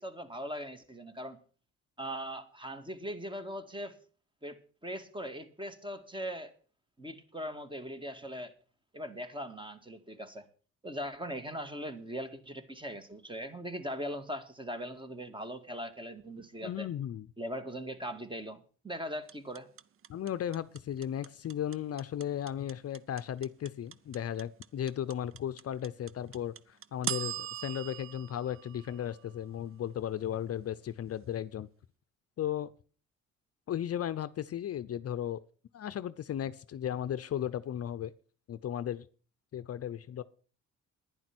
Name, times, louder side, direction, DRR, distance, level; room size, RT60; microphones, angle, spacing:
voice 1, 0.0-1.4 2.0-4.0 4.4-6.5 7.0-8.5 8.9-10.4 10.8-16.9 17.4-19.7, equal, 15° right, 9 dB, 2.1 m, -40 dB
voice 2, 16.6-17.3 20.1-31.7 32.4-32.7 33.7-35.4 35.7-38.1 38.5-39.0 39.5-40.2, left 10 dB, 50° left, 15 dB, 0.7 m, -35 dB
sound 1, 19.3-29.5, right 10 dB, 45° right, 0.7 m, -40 dB
11.0 x 10.5 x 6.1 m, 0.39 s
cardioid pair, 90°, 30 cm